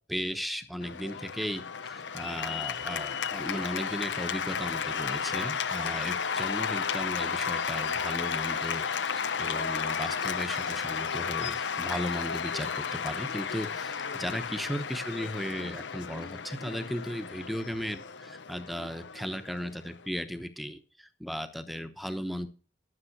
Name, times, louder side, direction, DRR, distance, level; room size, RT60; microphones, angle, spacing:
voice 1, 0.1-22.5, equal, ahead, 8 dB, 0.9 m, -36 dB
Cheering / Applause, 0.8-20.1, left 6 dB, 80° left, 0.7 m, -33 dB
13.0 x 7.5 x 6.0 m, 0.37 s
head